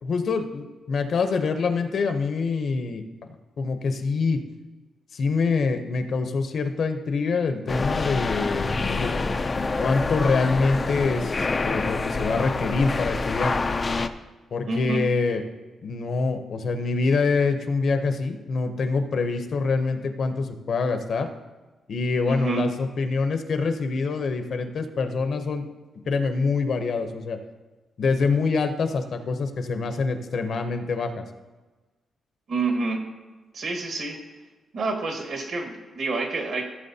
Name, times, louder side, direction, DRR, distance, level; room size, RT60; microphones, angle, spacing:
voice 1, 0.0-3.0 3.6-4.4 5.1-9.1 9.5-13.5 14.5-15.4 15.8-21.3 21.9-25.6 26.1-27.4 28.0-31.2, left 4 dB, 45° left, 7 dB, 0.7 m, -25 dB
sound 1, 7.7-14.1, left 3 dB, 20° left, 0.3 m, -26 dB
voice 2, 14.7-15.0 22.3-22.6 32.5-33.0 33.5-34.2 34.7-36.7, right 3 dB, 50° right, 3 dB, 1.4 m, -28 dB
15.5 x 7.2 x 2.7 m, 1.2 s
wide cardioid pair, 180°, 0 cm